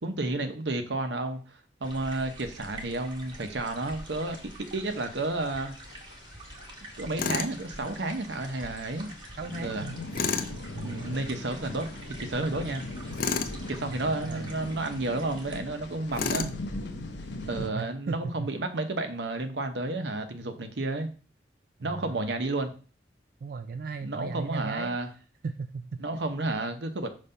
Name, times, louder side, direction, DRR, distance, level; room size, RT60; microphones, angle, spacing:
voice 1, 0.0-5.7 7.0-9.1 9.6-9.9 10.8-12.8 13.7-16.5 17.5-21.1 21.8-22.7 24.0-25.1 26.0-27.1, right 2 dB, 80° right, 7 dB, 0.9 m, -31 dB
sound 1, 1.8-15.6, right 1 dB, 25° right, 1.2 m, -46 dB
sound 2, 3.7-17.7, left 2 dB, 80° left, 0.9 m, -41 dB
Tools, 7.2-7.5 10.1-10.5 13.2-13.6 16.2-16.6, left 5 dB, 55° left, 0.5 m, -29 dB
voice 2, 9.4-10.0 10.7-11.3 13.9-14.5 17.6-18.5 21.8-22.3 23.4-26.3, right 4 dB, 55° right, 9 dB, 0.3 m, -37 dB
5.3 x 3.3 x 5.5 m, 0.37 s
head